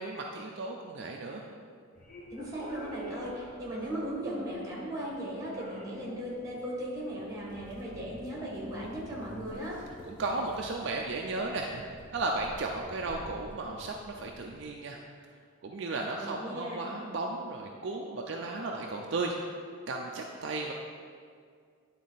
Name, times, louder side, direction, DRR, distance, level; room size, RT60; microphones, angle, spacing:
voice 1, 0.0-1.4 10.1-11.8 12.1-15.0 15.6-19.4 19.9-20.7, right 3 dB, 55° right, 1 dB, 0.4 m, -35 dB
sound 1, 1.9-14.6, equal, 35° left, 0.9 m, -50 dB
voice 2, 2.3-9.8 16.2-16.8, equal, 15° right, -4 dB, 1.6 m, -37 dB
9.4 x 4.1 x 4.0 m, 2.1 s
head